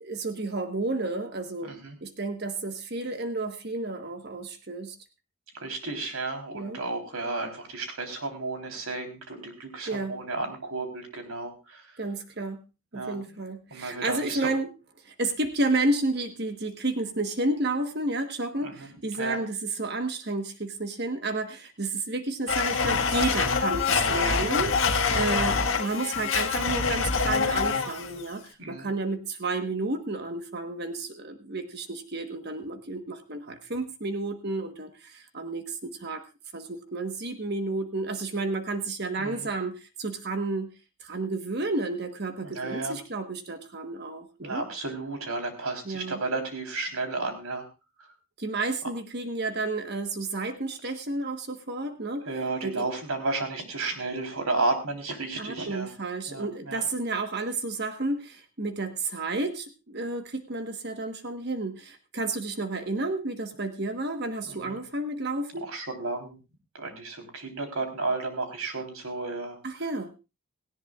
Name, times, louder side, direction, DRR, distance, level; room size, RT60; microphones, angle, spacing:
voice 1, 0.0-5.0 6.5-6.8 9.9-10.2 12.0-12.6 12.9-14.7 15.0-36.2 36.5-40.7 41.0-44.6 45.8-46.2 48.4-52.3 52.6-52.9 55.4-65.6 69.6-70.1, right 2 dB, 50° right, 7 dB, 1.3 m, -31 dB
voice 2, 1.6-2.0 5.5-11.8 12.9-13.2 13.7-14.5 18.6-18.9 19.2-19.4 25.1-25.2 28.6-28.9 39.2-39.5 42.4-43.0 44.4-47.7 52.3-55.9 56.3-56.8 64.4-64.8 65.6-66.4 66.7-69.6, right 3 dB, 85° right, 5 dB, 3.7 m, -33 dB
Domestic sounds home sounds, 22.5-28.1, left 5 dB, 60° left, 1.7 m, -25 dB
18.0 x 16.5 x 2.4 m, 0.28 s
head